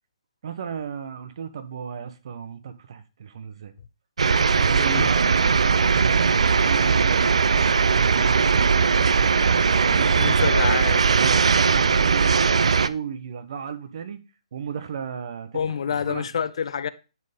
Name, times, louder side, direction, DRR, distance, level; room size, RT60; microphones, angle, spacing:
voice 1, 0.4-3.7 4.6-7.3 7.9-8.7 9.7-10.7 11.1-14.2 14.5-16.3, right 7 dB, 55° right, 1.3 m, -35 dB
sound 1, 4.2-12.9, right 5 dB, 70° right, 0.5 m, -19 dB
voice 2, 10.2-11.0 15.5-16.9, left 7 dB, 60° left, 0.6 m, -27 dB
10.5 x 4.7 x 3.6 m
figure-of-eight pair, 140°, 3 cm